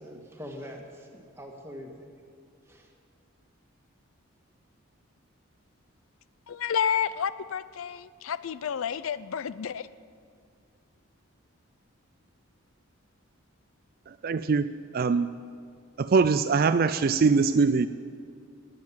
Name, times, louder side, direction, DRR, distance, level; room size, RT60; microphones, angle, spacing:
voice 1, 0.0-2.1 2.7-2.9, equal, 10° right, 1.7 m, -43 dB
voice 2, 6.5-9.9, left 7 dB, 75° left, 0.4 m, -30 dB
voice 3, 14.1-15.3 16.0-17.9, right 4 dB, 45° right, 0.3 m, -23 dB
19.5 x 9.5 x 7.3 m
head